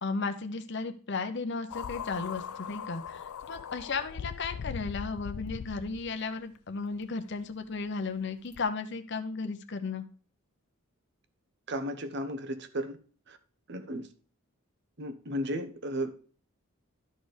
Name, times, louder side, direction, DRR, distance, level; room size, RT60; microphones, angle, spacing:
voice 1, 0.0-10.1, left 4 dB, 50° left, 0.7 m, -35 dB
sound 1, 1.7-6.2 7.0-7.1 8.5-8.6, left 7 dB, 90° left, 0.4 m, -40 dB
voice 2, 11.7-13.0 13.3-13.4 13.7-14.1 15.0-16.1, equal, 50° right, 1.0 m, -34 dB
12.0 x 4.3 x 5.1 m
head